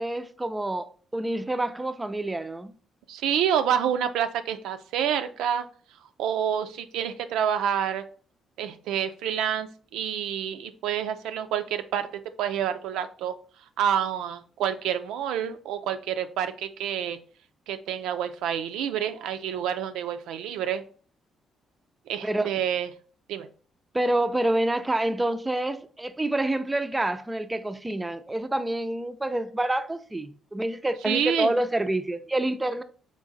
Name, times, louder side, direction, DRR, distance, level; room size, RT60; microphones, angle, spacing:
voice 1, 0.0-2.7 22.2-22.5 23.9-32.8, right 1 dB, 15° right, 0.4 m, -27 dB
voice 2, 3.1-5.7 6.2-8.0 8.6-12.1 12.4-13.3 13.8-17.2 17.7-20.8 22.1-22.9 23.3-23.5 31.1-31.5, right 9 dB, 90° right, 0.4 m, -28 dB
3.7 x 3.2 x 3.9 m
cardioid pair, 90°, 0 cm